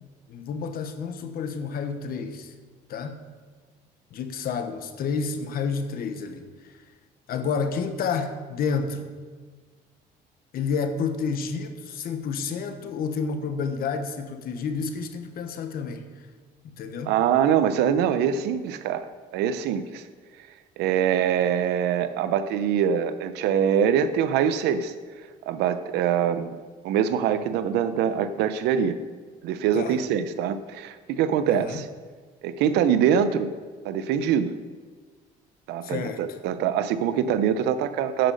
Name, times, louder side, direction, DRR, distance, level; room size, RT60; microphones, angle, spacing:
voice 1, 0.3-2.5 2.9-3.3 4.1-6.7 7.3-9.1 10.5-16.1 16.7-17.2 29.7-30.0 31.5-31.8 35.8-36.2, left 5 dB, 60° left, 8 dB, 1.1 m, -30 dB
voice 2, 17.1-20.0 20.8-24.9 25.5-26.6 26.8-29.0 29.4-31.9 32.4-33.5 33.8-34.5 35.7-38.3, right 8 dB, 90° right, 12 dB, 0.7 m, -24 dB
10.0 x 5.9 x 6.4 m, 1.5 s
cardioid pair, 110°, 17 cm